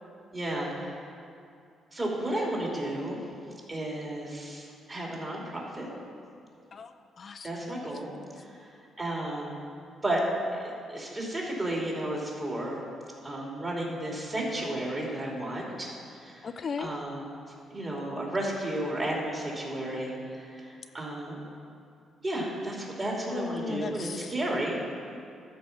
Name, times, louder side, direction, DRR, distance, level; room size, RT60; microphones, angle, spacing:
voice 1, 0.3-1.0 1.9-3.2 3.7-5.9 7.4-8.7 9.0-9.6 10.0-10.2 10.5-12.8 13.2-16.5 16.8-17.2 17.7-21.5 22.2-24.8, right 1 dB, 25° right, -3 dB, 2.9 m, -33 dB
voice 2, 6.7-7.7 16.4-17.0 23.3-24.3, left 5 dB, 45° left, 9 dB, 0.4 m, -37 dB
13.0 x 4.9 x 7.1 m, 2.4 s
cardioid pair, 90°, 0 cm